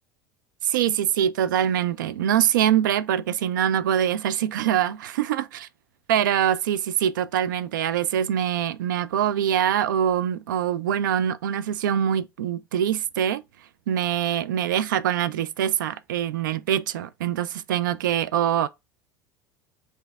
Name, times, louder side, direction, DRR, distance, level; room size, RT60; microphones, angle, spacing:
voice 1, 0.6-5.7 6.1-13.4 13.9-18.7, right 10 dB, 70° right, 0.4 m, -24 dB
4.8 x 2.6 x 3.4 m
figure-of-eight pair, 70°, 11 cm